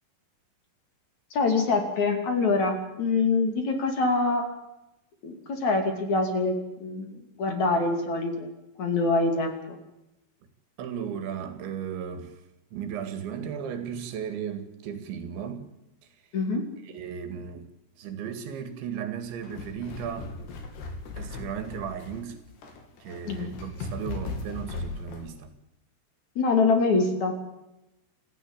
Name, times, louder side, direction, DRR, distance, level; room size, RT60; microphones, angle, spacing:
voice 1, 1.3-4.5 5.2-8.5 8.8-9.8 16.3-16.6 23.3-23.5 26.4-27.3, left 3 dB, 45° left, 3.8 m, -25 dB
voice 2, 10.8-12.4 12.7-15.7 16.8-17.7 18.0-20.3 21.2-22.4 23.0-25.5, right 8 dB, 85° right, 4.6 m, -35 dB
sound 1, 19.2-25.3, left 3 dB, 70° left, 4.9 m, -38 dB
28.5 x 15.0 x 8.9 m
omnidirectional pair, 5.1 m